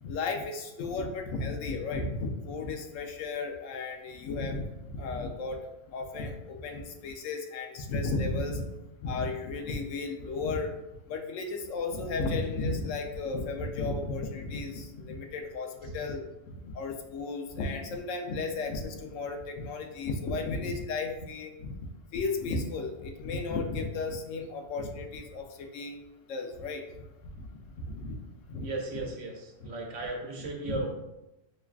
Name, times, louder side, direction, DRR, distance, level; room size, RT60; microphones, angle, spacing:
voice 1, 0.0-5.6 5.9-8.6 9.0-10.7 11.1-16.2 16.6-21.8 22.1-26.0 26.3-26.8 27.4-27.5 27.9-28.1 28.5-28.7 30.6-30.7, left 3 dB, 85° left, 4 dB, 0.9 m, -34 dB
voice 2, 28.6-30.9, right 3 dB, 75° right, 1 dB, 1.1 m, -36 dB
5.4 x 2.2 x 2.3 m, 0.93 s
omnidirectional pair, 1.3 m